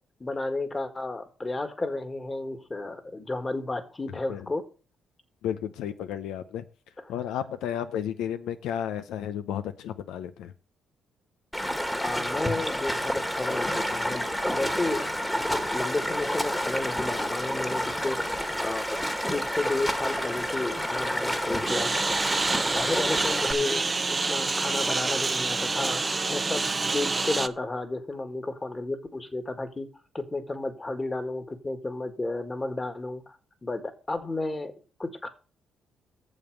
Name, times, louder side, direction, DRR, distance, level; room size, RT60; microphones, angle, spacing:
voice 1, 0.2-4.7 7.0-7.1 12.0-15.1 15.4-22.0 22.5-29.9 30.1-33.4 33.6-34.7 35.0-35.3, left 2 dB, 25° left, 1.8 m, -32 dB
voice 2, 5.4-6.6 7.1-10.5, left 9 dB, 90° left, 0.7 m, -32 dB
Stream, 11.5-23.5, equal, 5° left, 1.5 m, -29 dB
sound 1, 13.4-18.4, left 6 dB, 70° left, 1.3 m, -45 dB
Engine, 21.7-27.5, right 3 dB, 25° right, 0.7 m, -27 dB
8.2 x 7.2 x 6.6 m
cardioid pair, 90°, 0 cm